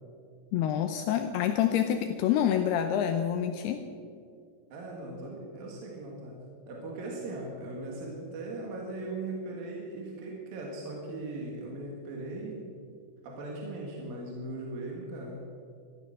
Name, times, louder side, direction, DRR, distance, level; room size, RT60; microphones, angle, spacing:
voice 1, 0.5-3.8, left 9 dB, 80° left, 7 dB, 2.4 m, -27 dB
voice 2, 4.7-6.4 6.7-12.7 13.2-15.4, right 2 dB, 60° right, -1 dB, 3.2 m, -39 dB
13.5 x 13.0 x 6.5 m, 2.3 s
omnidirectional pair, 5.2 m